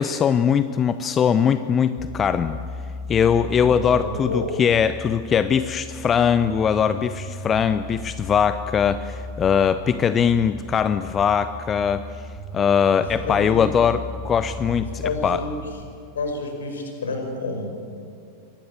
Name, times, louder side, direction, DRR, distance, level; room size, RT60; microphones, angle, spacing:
voice 1, 0.0-2.6 3.1-12.0 12.5-15.4, left 7 dB, 25° left, 13 dB, 0.7 m, -21 dB
sound 1, 2.0-15.8, left 1 dB, 20° right, 3.0 m, -36 dB
voice 2, 3.6-4.5 13.0-13.7 15.0-15.5 16.1-17.8, left 3 dB, 65° left, 4 dB, 5.0 m, -29 dB
24.0 x 19.0 x 8.2 m, 2.3 s
figure-of-eight pair, 90°, 0 cm